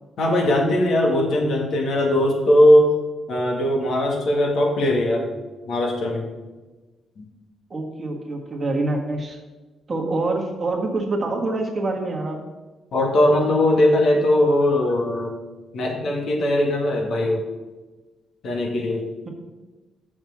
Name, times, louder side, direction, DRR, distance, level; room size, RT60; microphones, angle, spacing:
voice 1, 0.2-3.0 3.3-5.3 5.7-6.2 7.2-7.3 12.9-15.3 15.7-17.4 18.4-19.1, left 1 dB, 65° left, 1 dB, 1.9 m, -19 dB
voice 2, 7.7-9.4 9.9-12.4, right 2 dB, 30° right, 1 dB, 1.6 m, -25 dB
6.5 x 6.0 x 7.3 m, 1.2 s
cardioid pair, 120°, 0 cm